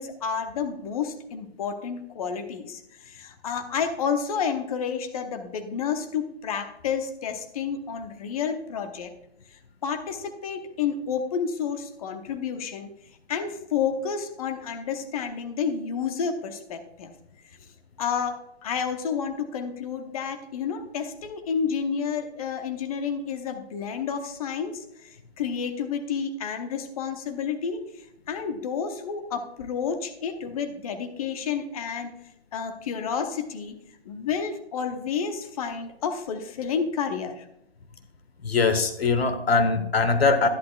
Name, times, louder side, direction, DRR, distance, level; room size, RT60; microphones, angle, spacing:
voice 1, 0.0-9.1 9.5-12.9 13.3-17.1 18.0-32.2 32.5-33.8 34.0-37.5, left 6 dB, 35° left, 8 dB, 0.9 m, -30 dB
voice 2, 38.4-40.5, left 4 dB, 65° left, 8 dB, 1.2 m, -22 dB
11.0 x 10.5 x 2.4 m, 0.81 s
figure-of-eight pair, 135°, 32 cm